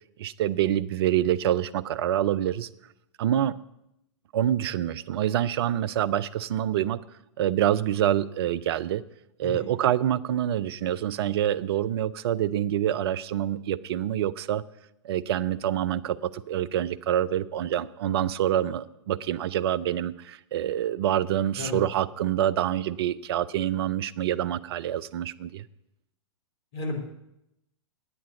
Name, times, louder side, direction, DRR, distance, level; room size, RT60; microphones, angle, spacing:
voice 1, 0.2-2.7 3.2-3.6 4.3-7.0 7.4-9.0 9.4-14.6 15.0-25.6, right 11 dB, 55° right, 18 dB, 0.5 m, -26 dB
voice 2, 9.4-9.7 21.6-21.8 26.7-27.0, left 3 dB, 55° left, 3 dB, 3.0 m, -32 dB
9.9 x 8.6 x 6.9 m, 0.83 s
figure-of-eight pair, 110°, 16 cm